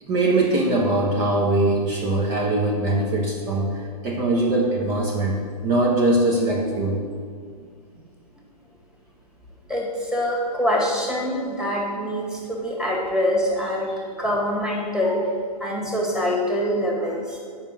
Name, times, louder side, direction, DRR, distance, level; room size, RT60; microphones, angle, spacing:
voice 1, 0.0-7.0, right 2 dB, 35° right, 0 dB, 1.2 m, -22 dB
voice 2, 9.7-15.3 15.6-17.4, equal, 5° right, -3 dB, 2.0 m, -24 dB
7.3 x 5.8 x 7.5 m, 2.1 s
hypercardioid pair, 125°, 20 cm